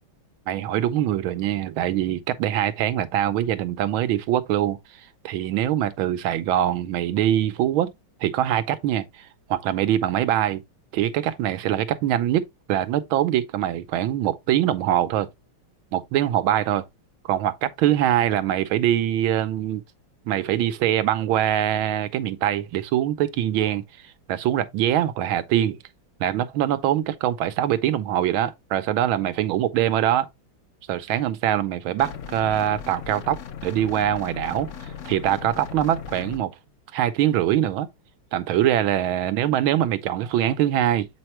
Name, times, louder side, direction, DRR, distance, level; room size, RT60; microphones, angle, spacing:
voice 1, 0.5-4.8 5.2-7.9 8.2-10.6 10.9-15.3 15.9-16.8 17.2-19.8 20.3-23.8 24.3-25.8 26.2-30.3 30.9-36.5 36.9-37.9 38.3-41.1, right 11 dB, 85° right, 1.5 m, -23 dB
sound 1, 32.0-36.4, left 8 dB, 75° left, 0.7 m, -37 dB
7.7 x 4.4 x 3.0 m
omnidirectional pair, 2.2 m